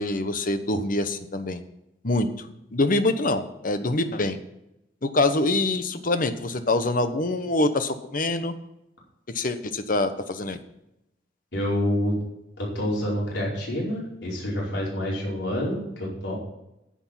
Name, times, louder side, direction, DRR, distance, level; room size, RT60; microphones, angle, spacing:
voice 1, 0.0-1.6 2.0-4.4 5.0-8.5 9.3-10.6, left 2 dB, 50° left, 9 dB, 1.1 m, -25 dB
voice 2, 11.5-12.1 12.6-16.4, equal, 80° left, -4 dB, 4.8 m, -27 dB
10.5 x 8.7 x 5.7 m, 0.86 s
head